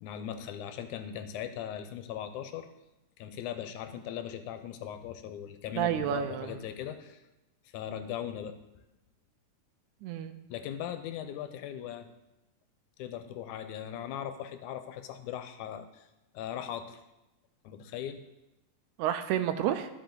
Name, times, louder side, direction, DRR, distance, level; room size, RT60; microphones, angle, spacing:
voice 1, 0.0-2.7 3.2-7.2 7.7-8.6 10.5-12.1 13.0-16.0 16.3-17.0 17.6-18.2, left 10 dB, 85° left, 9 dB, 2.1 m, -39 dB
voice 2, 5.8-6.5 10.0-10.4 19.0-19.9, right 11 dB, 80° right, 10 dB, 1.9 m, -30 dB
13.0 x 5.1 x 3.8 m, 0.97 s
omnidirectional pair, 3.5 m